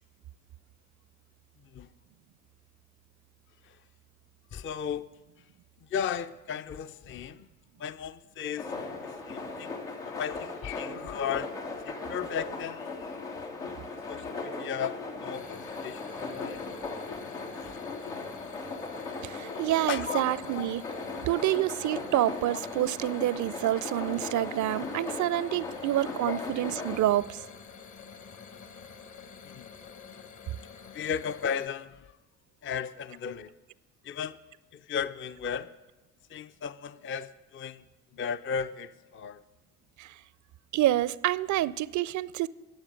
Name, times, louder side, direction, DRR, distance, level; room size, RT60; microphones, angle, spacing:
voice 1, 4.5-5.1 5.9-7.5 7.8-8.7 9.0-9.8 10.1-11.5 11.9-13.2 13.8-16.6 17.6-17.8 19.9-20.2 20.6-20.7 26.2-26.4 29.4-29.7 30.9-32.1 32.6-33.5 34.0-34.4 34.7-35.7 36.3-37.8 38.1-39.4, left 7 dB, 35° left, 0.5 m, -35 dB
sound 1, 8.6-27.0, left 3 dB, 85° left, 1.5 m, -38 dB
sound 2, 15.3-31.7, left 6 dB, 50° left, 1.2 m, -49 dB
voice 2, 19.2-20.8 21.3-27.4 40.0-40.1 40.7-42.5, right 14 dB, 50° right, 0.5 m, -28 dB
20.0 x 7.3 x 5.1 m
hypercardioid pair, 45°, 38 cm